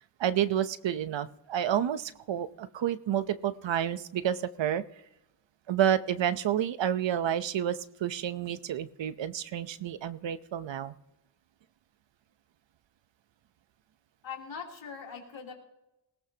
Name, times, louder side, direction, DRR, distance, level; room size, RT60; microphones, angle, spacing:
voice 1, 0.2-4.8 5.7-10.9, right 10 dB, 75° right, 13 dB, 0.8 m, -30 dB
voice 2, 14.2-15.5, left 6 dB, 85° left, -1 dB, 3.3 m, -41 dB
20.0 x 17.0 x 2.9 m, 0.93 s
cardioid pair, 70°, 44 cm